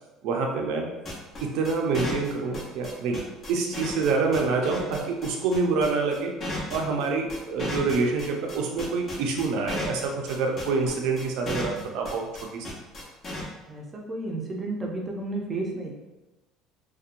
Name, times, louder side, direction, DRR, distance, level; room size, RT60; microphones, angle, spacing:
voice 1, 0.2-0.9 1.4-3.2 3.5-6.3 6.7-12.2 12.5-12.7, right 4 dB, 75° right, 1 dB, 0.5 m, -26 dB
sound 1, 1.1-13.4, left 2 dB, 40° left, 0.9 m, -34 dB
voice 2, 13.7-15.9, right 2 dB, 20° right, -1 dB, 0.5 m, -32 dB
2.7 x 2.2 x 2.5 m, 1.1 s
cardioid pair, 115°, 0 cm